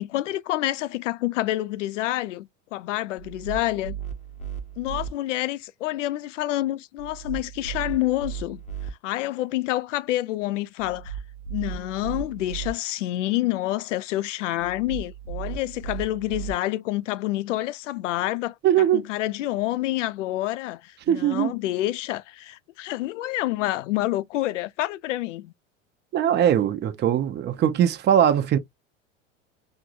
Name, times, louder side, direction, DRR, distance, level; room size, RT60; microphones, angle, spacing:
voice 1, 0.0-4.0 4.8-8.6 9.0-11.2 11.5-18.5 18.9-25.5, left 15 dB, 75° left, 0.5 m, -28 dB
sound 1, 3.2-5.1 7.0-8.9 10.8-12.7 14.6-16.5, right 9 dB, 20° left, 0.6 m, -35 dB
voice 2, 18.6-19.0 21.1-21.5 26.1-28.6, right 10 dB, 30° right, 0.6 m, -21 dB
4.5 x 2.0 x 2.4 m
hypercardioid pair, 85°, 37 cm